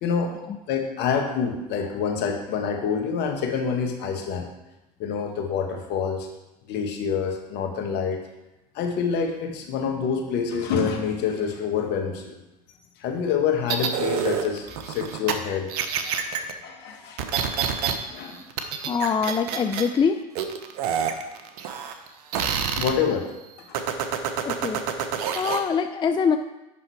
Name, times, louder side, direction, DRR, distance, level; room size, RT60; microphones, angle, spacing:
voice 1, 0.0-0.3 0.7-4.5 5.0-6.3 6.7-8.2 8.7-12.3 13.0-15.7 16.0-16.2 16.6-17.2 18.1-18.4 22.8-23.3 23.7-23.8, left 6 dB, 55° left, 4 dB, 1.6 m, -27 dB
sound 1, 13.7-15.4 15.7-16.5 17.2-17.9 18.2-19.9 20.4-22.1 22.3-22.9 23.7-25.6, right 7 dB, 75° right, 0.9 m, -27 dB
voice 2, 18.9-20.2 24.4-26.4, left 6 dB, 25° left, 8 dB, 0.5 m, -24 dB
9.0 x 5.7 x 4.8 m, 0.95 s
hypercardioid pair, 85°, 20 cm